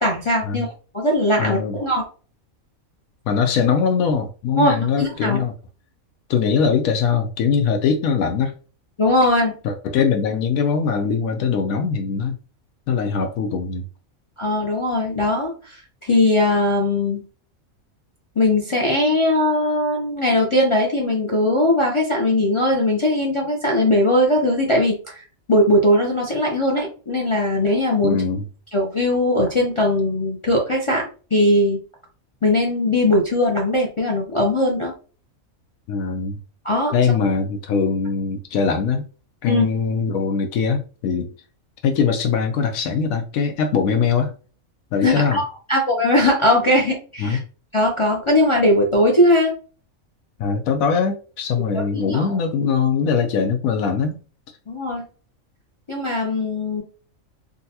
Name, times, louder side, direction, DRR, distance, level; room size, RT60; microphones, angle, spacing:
voice 1, 0.0-0.7 0.9-2.0 4.6-5.4 9.0-9.5 14.4-15.8 16.0-17.2 18.4-25.2 25.5-28.2 28.7-31.1 31.3-31.8 32.4-34.9 36.6-36.9 39.5-39.7 45.0-45.4 45.7-47.4 47.7-49.5 51.7-52.4 54.7-55.0 55.9-56.8, left 1 dB, 45° left, 0.4 m, -19 dB
voice 2, 1.4-1.8 3.3-5.5 6.3-8.5 9.6-12.3 12.9-13.8 28.0-28.4 35.9-36.4 36.9-39.0 39.4-41.3 41.8-44.3 44.9-45.4 47.2-47.4 50.4-54.2, left 6 dB, 80° left, 1.0 m, -21 dB
3.9 x 2.3 x 2.7 m
omnidirectional pair, 1.4 m